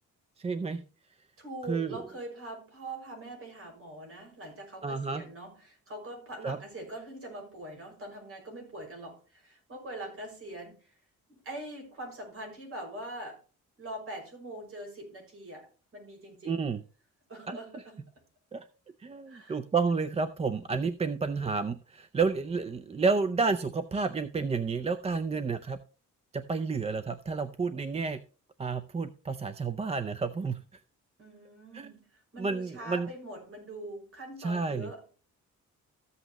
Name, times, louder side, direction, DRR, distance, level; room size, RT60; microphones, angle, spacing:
voice 1, 0.4-0.8 1.7-2.0 4.8-5.2 6.4-6.6 16.4-16.8 17.5-17.6 18.5-18.7 19.0-25.8 26.3-28.2 28.6-30.8 31.7-31.9 32.4-33.1 34.4-34.9, right 4 dB, 20° right, 11 dB, 0.5 m, -30 dB
voice 2, 1.4-10.9 11.3-13.4 13.8-16.7 17.3-18.1 19.3-19.6 31.2-35.0, right 1 dB, 45° right, 2 dB, 5.9 m, -43 dB
14.0 x 8.1 x 3.0 m, 0.37 s
cardioid pair, 150°, 30 cm